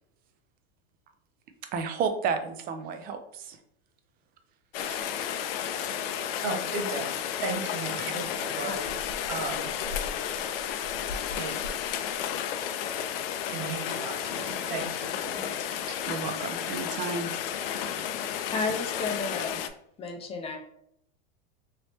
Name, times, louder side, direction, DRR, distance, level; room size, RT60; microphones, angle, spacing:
voice 1, 1.7-3.6 4.8-5.0 8.0-8.2 15.7-17.3 18.7-18.8, right 5 dB, 30° right, 8 dB, 0.4 m, -33 dB
Rain, 4.7-19.7, left 9 dB, 75° left, 0.5 m, -32 dB
voice 2, 6.4-7.1 7.4-8.9 9.3-9.7 11.3-11.6 13.5-15.7, right 3 dB, 80° right, 1 dB, 1.1 m, -35 dB
voice 3, 18.5-19.6 20.0-20.6, left 3 dB, 20° left, 3 dB, 0.6 m, -32 dB
3.1 x 3.0 x 3.0 m, 0.72 s
supercardioid pair, 135°, 29 cm